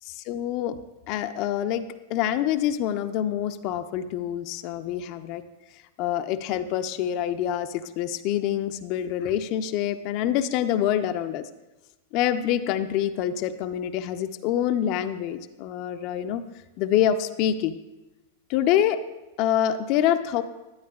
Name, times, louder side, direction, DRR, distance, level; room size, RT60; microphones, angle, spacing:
voice 1, 0.0-0.8 1.1-1.8 2.1-5.4 6.0-11.5 12.1-16.4 16.8-17.8 18.5-19.0 19.4-20.4, left 10 dB, 50° left, 10 dB, 0.4 m, -26 dB
12.0 x 8.5 x 2.3 m, 1.1 s
hypercardioid pair, 105°, 0 cm